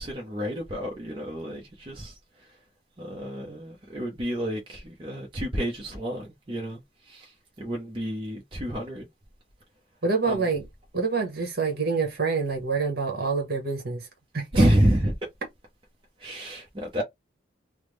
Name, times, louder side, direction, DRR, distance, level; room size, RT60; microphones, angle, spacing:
voice 1, 0.0-2.6 3.0-9.1 10.2-10.5 14.5-15.3 16.2-17.0, right 1 dB, 25° right, 0.6 m, -29 dB
voice 2, 10.0-10.6 10.9-14.0 14.3-14.6, right 4 dB, 50° right, 1.1 m, -26 dB
3.4 x 2.0 x 3.1 m
head